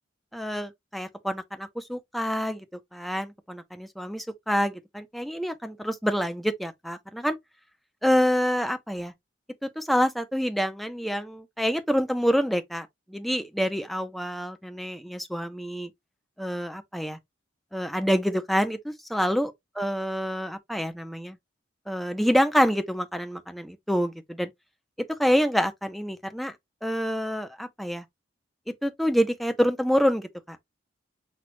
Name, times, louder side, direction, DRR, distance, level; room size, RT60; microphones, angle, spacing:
voice 1, 0.3-2.6 2.9-7.4 8.0-9.1 9.6-15.9 16.4-17.2 17.7-19.5 19.8-21.4 21.9-24.5 25.1-26.5 26.8-28.0 28.8-30.6, equal, ahead, 0.6 m, -27 dB
6.1 x 2.4 x 3.0 m
head